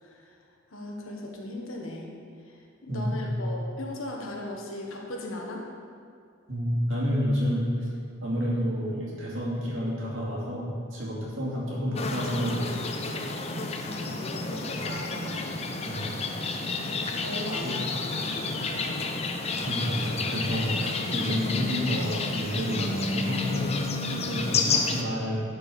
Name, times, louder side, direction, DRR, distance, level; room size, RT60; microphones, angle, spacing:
voice 1, 0.7-2.1 2.4-5.7 13.8-15.8 17.1-19.2, left 1 dB, 75° left, 0 dB, 1.4 m, -38 dB
voice 2, 2.9-3.4 6.5-7.9 8.2-12.8 15.8-16.1 17.6-17.8 19.6-23.7 24.1-25.4, equal, 65° right, -5 dB, 2.3 m, -29 dB
sound 1, 12.0-25.0, left 3 dB, 30° left, 0.6 m, -30 dB
11.5 x 5.0 x 5.0 m, 2.3 s
head